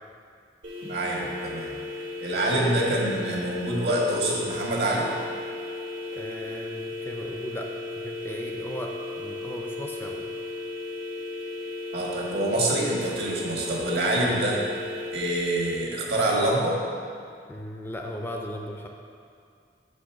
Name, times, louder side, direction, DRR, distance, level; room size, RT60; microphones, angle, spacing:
sound 1, 0.6-15.8, left 2 dB, 90° right, 1.9 m, -35 dB
voice 1, 0.9-1.7 2.2-5.1 11.9-14.6 15.1-16.8, right 1 dB, 65° right, -3 dB, 1.5 m, -26 dB
voice 2, 6.1-7.7 8.0-10.3 17.5-18.9, equal, 10° left, 1 dB, 0.4 m, -37 dB
6.2 x 5.2 x 5.8 m, 2.3 s
head